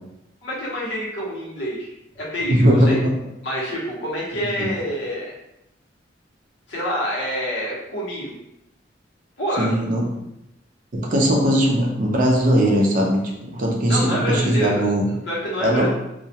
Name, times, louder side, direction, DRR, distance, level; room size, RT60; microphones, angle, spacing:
voice 1, 0.4-1.9 2.1-3.0 3.4-5.3 6.7-8.4 9.4-9.7 13.8-15.0 15.3-15.9, equal, 70° left, -6 dB, 0.9 m, -27 dB
voice 2, 2.5-3.1 4.6-4.7 9.6-10.0 10.9-15.1 15.6-15.9, equal, 45° right, -1 dB, 0.5 m, -19 dB
2.3 x 2.1 x 2.7 m, 0.87 s
head